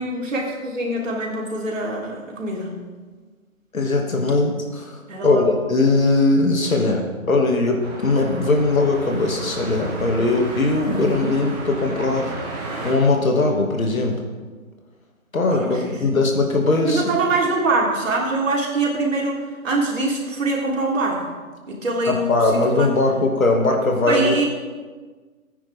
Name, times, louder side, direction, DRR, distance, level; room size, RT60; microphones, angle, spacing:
voice 1, 0.0-2.8 5.1-5.4 15.5-16.0 16.8-21.3 21.7-22.9 24.1-24.4, right 2 dB, 65° right, -2 dB, 3.7 m, -24 dB
voice 2, 3.7-5.0 5.2-12.3 12.8-14.2 15.3-17.1 22.1-24.3, left 2 dB, 70° left, 1 dB, 2.7 m, -20 dB
sound 1, 7.8-12.9, right 3 dB, 25° right, 2.3 m, -32 dB
16.5 x 9.6 x 3.7 m, 1.4 s
figure-of-eight pair, 155°, 42 cm